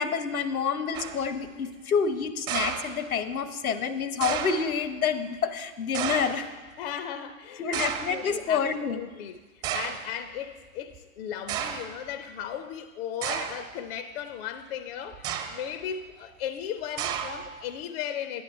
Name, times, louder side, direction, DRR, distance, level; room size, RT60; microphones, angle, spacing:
voice 1, 0.0-6.5 7.6-9.0, left 6 dB, 80° left, 12 dB, 0.9 m, -28 dB
sound 1, 0.9-1.3 2.5-3.4 4.2-4.7 5.9-6.5 7.7-8.3 9.1-9.2 9.6-10.1 10.9-11.0 11.5-12.0 13.2-13.7 15.1-15.7 17.0-17.6, right 8 dB, 30° right, 1.2 m, -32 dB
voice 2, 6.8-18.4, left 9 dB, 45° left, 10 dB, 0.6 m, -36 dB
10.5 x 9.4 x 4.3 m, 1.3 s
hypercardioid pair, 110°, 42 cm